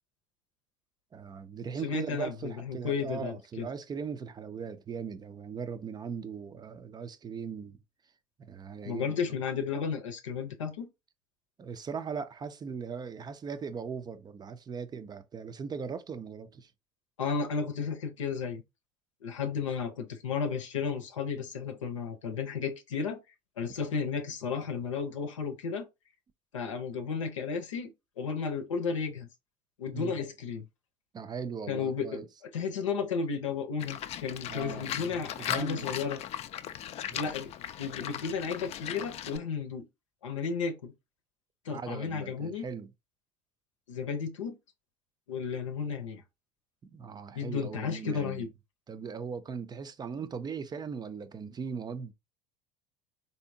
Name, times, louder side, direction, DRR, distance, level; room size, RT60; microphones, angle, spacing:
voice 1, 1.1-7.8 8.4-9.1 11.6-16.7 29.9-30.1 31.1-32.3 34.5-35.8 37.1-37.3 41.7-42.9 46.8-48.5 48.9-52.1, right 6 dB, 25° right, 0.4 m, -39 dB
voice 2, 1.8-3.7 8.8-10.9 17.2-18.6 19.2-23.2 23.6-25.9 26.5-29.3 29.8-30.6 31.7-32.2 32.5-36.2 37.1-37.5 37.8-39.9 40.2-40.9 41.7-42.7 43.9-44.6 45.3-46.2 47.3-48.5, left 5 dB, 85° left, 0.7 m, -33 dB
Livestock farm animals working animals, 33.8-39.4, left 11 dB, 45° left, 0.4 m, -38 dB
3.4 x 2.7 x 2.6 m
hypercardioid pair, 70°, 16 cm